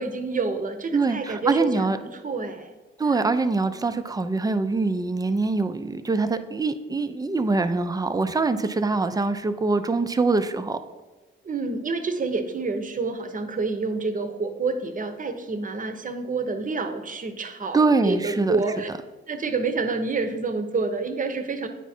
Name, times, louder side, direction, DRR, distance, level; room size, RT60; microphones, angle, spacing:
voice 1, 0.0-2.7 11.4-18.9 19.3-21.7, right 4 dB, 40° right, 8 dB, 0.8 m, -28 dB
voice 2, 0.9-2.0 3.0-10.8 17.7-18.6, right 3 dB, 15° right, 10 dB, 0.5 m, -24 dB
9.1 x 4.7 x 4.3 m, 1.2 s
cardioid pair, 95°, 21 cm